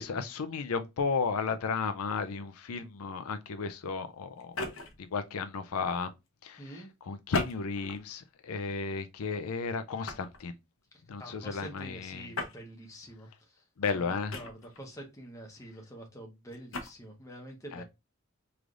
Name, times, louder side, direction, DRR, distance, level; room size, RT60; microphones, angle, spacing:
voice 1, 0.0-4.6 5.0-6.1 6.4-10.5 11.1-12.3 13.8-14.3 17.7-17.8, left 5 dB, 90° left, 0.5 m, -34 dB
sound 1, 4.4-5.1 7.3-8.1 8.7-8.9 10.1-10.4 12.3-12.6 14.3-14.8 16.5-16.9, left 2 dB, 70° left, 0.9 m, -36 dB
voice 2, 6.6-6.9 10.9-13.6 13.9-17.8, right 1 dB, 15° left, 1.0 m, -47 dB
4.8 x 3.3 x 2.5 m
head